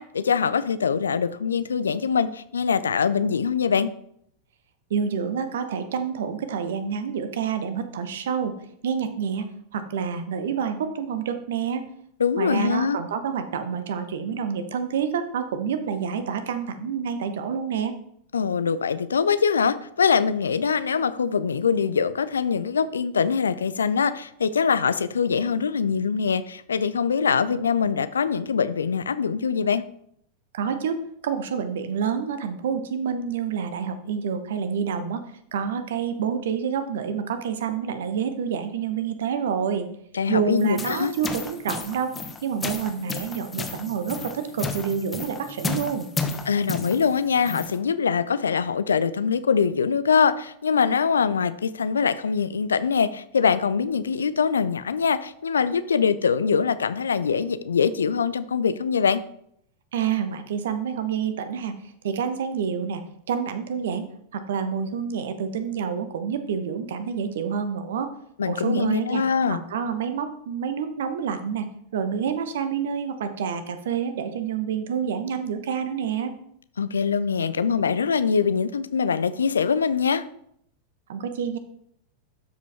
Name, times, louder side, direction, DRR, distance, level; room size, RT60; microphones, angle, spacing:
voice 1, 0.0-3.9 12.2-13.0 18.3-29.8 40.1-41.1 46.5-59.2 68.4-69.6 76.8-80.3, left 6 dB, 70° left, 14 dB, 0.4 m, -23 dB
voice 2, 4.9-8.5 8.8-11.9 12.4-18.0 30.5-35.2 35.5-39.9 40.3-42.1 42.4-46.1 59.9-63.0 63.3-64.1 64.3-68.1 68.5-76.3 81.1-81.6, right 7 dB, 60° right, 10 dB, 0.9 m, -28 dB
sound 1, 40.6-47.8, left 4 dB, 15° left, 0.9 m, -33 dB
12.0 x 5.0 x 3.4 m, 0.69 s
figure-of-eight pair, 90°, 0 cm